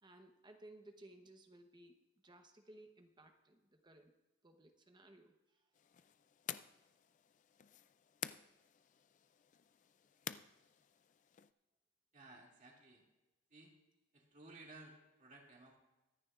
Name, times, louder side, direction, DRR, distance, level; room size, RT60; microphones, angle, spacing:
voice 1, 0.0-2.0 2.2-4.1 4.4-5.6, right 1 dB, 20° right, 5 dB, 0.9 m, -60 dB
sound 1, 5.7-11.5, left 10 dB, 35° left, 0.3 m, -51 dB
voice 2, 12.1-13.0 13.5-13.7 14.1-15.8, right 2 dB, 35° right, -1 dB, 2.4 m, -58 dB
23.5 x 9.7 x 2.4 m, 1.1 s
head